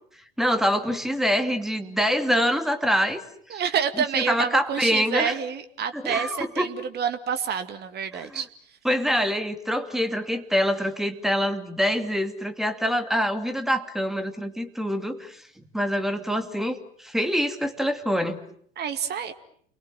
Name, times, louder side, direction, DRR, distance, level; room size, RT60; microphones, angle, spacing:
voice 1, 0.4-3.2 4.1-5.3 5.9-6.7 8.1-8.4 8.8-15.4 15.7-18.4, equal, ahead, 7 dB, 2.6 m, -25 dB
voice 2, 3.5-8.5 18.8-19.3, right 7 dB, 35° right, 9 dB, 2.2 m, -28 dB
30.0 x 23.5 x 7.7 m, 0.63 s
figure-of-eight pair, 80°, 30 cm